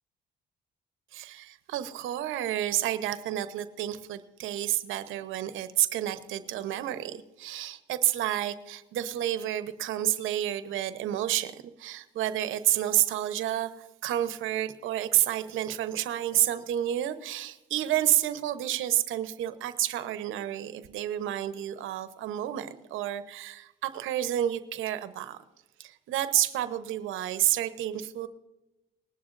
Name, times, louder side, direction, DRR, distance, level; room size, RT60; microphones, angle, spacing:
voice 1, 1.1-13.7 14.0-25.4 25.8-28.3, right 12 dB, 90° right, 12 dB, 0.9 m, -30 dB
20.5 x 11.0 x 2.6 m, 1.0 s
cardioid pair, 90°, 20 cm